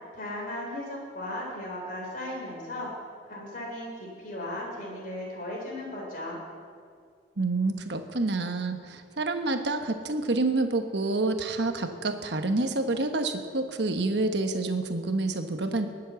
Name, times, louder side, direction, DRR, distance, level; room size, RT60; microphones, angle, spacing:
voice 1, 0.1-2.9 3.3-6.4, left 1 dB, 50° left, -2 dB, 3.6 m, -36 dB
voice 2, 7.4-15.9, right 2 dB, 65° right, 6 dB, 1.2 m, -28 dB
19.5 x 7.5 x 7.0 m, 2.2 s
head